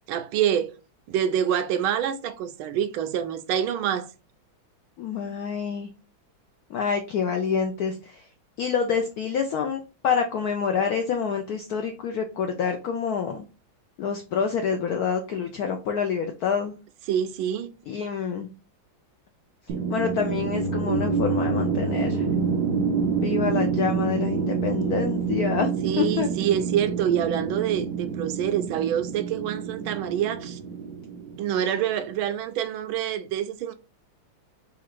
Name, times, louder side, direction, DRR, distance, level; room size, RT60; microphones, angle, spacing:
voice 1, 0.1-0.7 1.1-4.1 17.1-17.7 25.8-30.6 31.4-33.7, right 10 dB, 85° right, 1.4 m, -26 dB
voice 2, 5.0-5.9 6.7-8.2 8.6-13.4 14.0-16.8 17.9-18.5 19.9-22.3 23.2-25.7 26.0-26.3, left 6 dB, 80° left, 0.8 m, -27 dB
sound 1, 19.7-31.8, right 5 dB, 70° right, 1.1 m, -27 dB
4.0 x 2.5 x 4.4 m
omnidirectional pair, 2.2 m